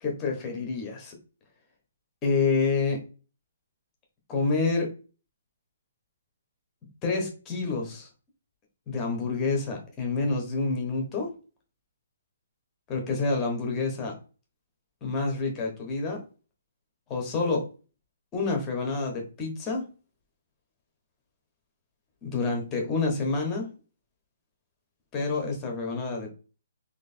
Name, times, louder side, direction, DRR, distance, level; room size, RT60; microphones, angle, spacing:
voice 1, 0.0-1.2 2.2-3.0 4.3-4.9 7.0-8.1 8.9-11.3 12.9-14.1 15.0-16.2 17.1-17.6 18.3-19.8 22.2-23.7 25.1-26.3, left 4 dB, 15° left, 1 dB, 1.2 m, -28 dB
3.1 x 3.0 x 4.3 m, 0.35 s
hypercardioid pair, 165°, 0 cm